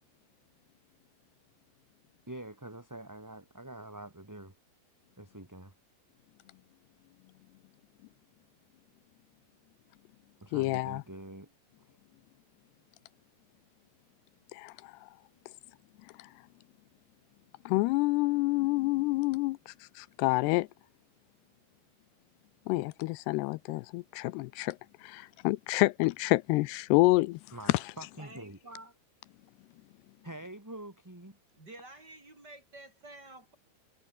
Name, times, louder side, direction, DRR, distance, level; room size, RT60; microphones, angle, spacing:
voice 1, 2.3-4.5 5.2-5.7 10.4-11.5 11.8-12.0 27.5-28.8 30.2-31.4, right 1 dB, 5° right, 2.4 m, -46 dB
voice 2, 10.5-11.0 14.5-14.9 17.7-20.7 22.7-24.8 25.0-27.4, left 21 dB, 85° left, 2.7 m, -28 dB
voice 3, 28.2-28.9 31.5-33.6, right 2 dB, 25° right, 6.4 m, -50 dB
omnidirectional pair, 4.8 m